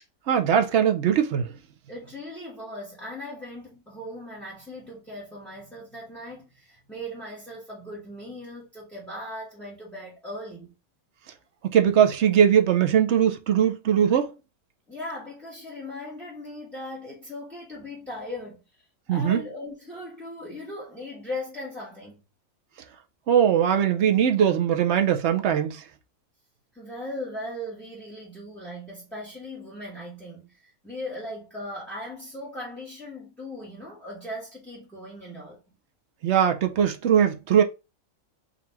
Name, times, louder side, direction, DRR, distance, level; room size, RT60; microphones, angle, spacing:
voice 1, 0.3-1.5 11.6-14.3 19.1-19.4 23.3-25.8 36.2-37.6, right 9 dB, 65° right, 0.8 m, -20 dB
voice 2, 1.9-10.7 14.9-18.6 19.1-22.2 26.7-35.6, left 1 dB, ahead, 1.1 m, -38 dB
3.9 x 2.4 x 4.3 m
omnidirectional pair, 1.4 m